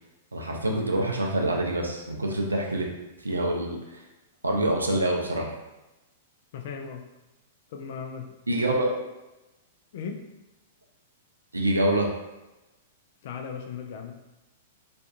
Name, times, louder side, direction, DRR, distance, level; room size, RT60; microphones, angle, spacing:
voice 1, 0.3-2.9 3.2-4.0 4.4-5.5 8.5-8.9 11.5-12.1, right 1 dB, 80° right, 0 dB, 0.4 m, -26 dB
voice 2, 6.5-7.1 7.7-8.3 9.9-10.2 13.2-14.2, left 6 dB, 50° left, 3 dB, 0.3 m, -37 dB
2.5 x 2.2 x 2.5 m, 1.0 s
figure-of-eight pair, 100°, 0 cm